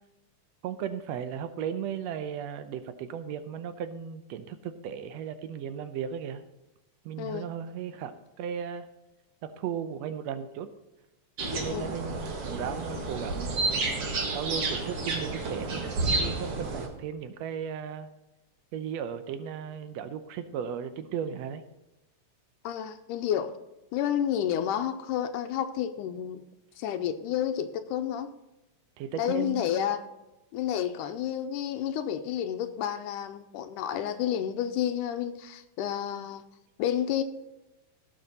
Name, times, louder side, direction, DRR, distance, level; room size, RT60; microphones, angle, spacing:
voice 1, 0.6-6.4 7.0-8.9 9.4-10.7 11.5-13.9 14.3-15.8 16.2-18.1 18.7-21.6 29.0-29.6, right 8 dB, 75° right, 1.6 m, -36 dB
voice 2, 7.2-7.5 11.7-12.0 22.6-23.6 23.9-26.4 26.8-28.3 29.2-30.1 30.5-36.4 36.8-37.2, left 10 dB, 90° left, 2.2 m, -30 dB
sound 1, 11.4-16.9, right 3 dB, 50° right, 2.4 m, -31 dB
17.5 x 6.5 x 4.1 m
omnidirectional pair, 3.6 m